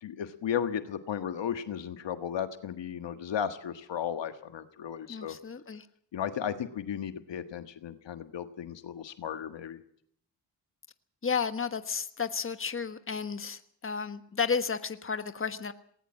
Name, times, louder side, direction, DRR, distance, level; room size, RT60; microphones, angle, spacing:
voice 1, 0.0-5.4 6.1-9.8, left 9 dB, 70° left, 9 dB, 1.6 m, -35 dB
voice 2, 5.1-5.9 11.2-15.7, left 6 dB, 30° left, 10 dB, 1.4 m, -32 dB
19.5 x 19.0 x 7.6 m, 0.65 s
supercardioid pair, 55°, 46 cm